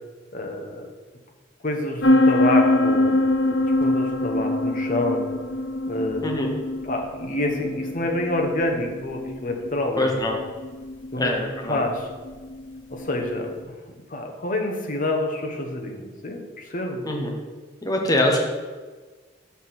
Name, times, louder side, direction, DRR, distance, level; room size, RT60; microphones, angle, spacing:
voice 1, 0.3-0.9 1.6-3.2 3.8-5.3 5.9-6.2 6.8-10.3 11.1-11.3 11.7-12.1 12.9-13.5 14.1-17.1, left 1 dB, 45° left, 2 dB, 1.0 m, -27 dB
sound 1, 2.0-13.5, left 1 dB, 65° left, 0.7 m, -24 dB
voice 2, 10.0-10.3 11.2-11.8 17.0-17.3 17.8-18.4, left 1 dB, 20° left, 0 dB, 1.0 m, -23 dB
5.8 x 4.2 x 6.1 m, 1.4 s
head